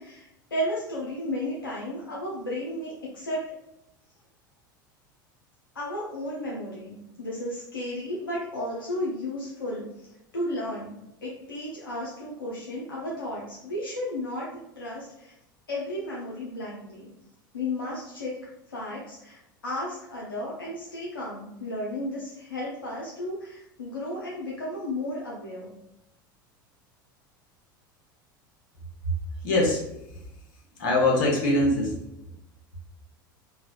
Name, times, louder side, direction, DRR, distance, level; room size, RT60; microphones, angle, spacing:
voice 1, 0.0-3.5 5.7-9.9 10.3-11.0 11.2-15.3 15.7-17.1 17.5-18.4 18.7-25.7, left 1 dB, 90° left, -5 dB, 0.6 m, -33 dB
voice 2, 29.4-29.8 30.8-31.9, left 2 dB, 65° left, -2 dB, 1.1 m, -22 dB
3.3 x 2.1 x 2.5 m, 0.85 s
hypercardioid pair, 85°, 11 cm